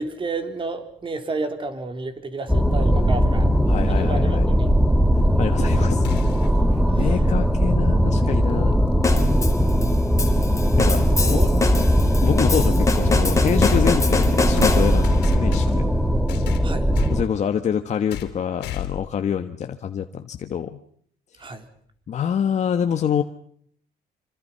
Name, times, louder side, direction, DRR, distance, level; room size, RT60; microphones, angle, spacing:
voice 1, 0.0-3.5 3.9-4.7 5.3-5.9 7.0-7.2 11.1-11.7 16.6-16.9 21.4-21.7, right 3 dB, 30° right, 8 dB, 3.6 m, -31 dB
sound 1, 2.5-17.2, equal, ahead, 1.9 m, -19 dB
voice 2, 3.7-4.5 5.4-6.0 7.0-8.8 10.8-11.4 12.2-15.9 17.1-20.8 22.1-23.2, left 8 dB, 45° left, 6 dB, 1.4 m, -26 dB
sound 2, 6.0-6.6 8.7-8.8 9.9-10.0 13.6-15.9 16.3-17.2 18.1-18.4 18.6-19.1, left 12 dB, 85° left, 3.1 m, -31 dB
sound 3, 9.0-15.2, left 4 dB, 20° left, 3.8 m, -25 dB
27.0 x 25.5 x 5.7 m, 0.64 s
cardioid pair, 110°, 17 cm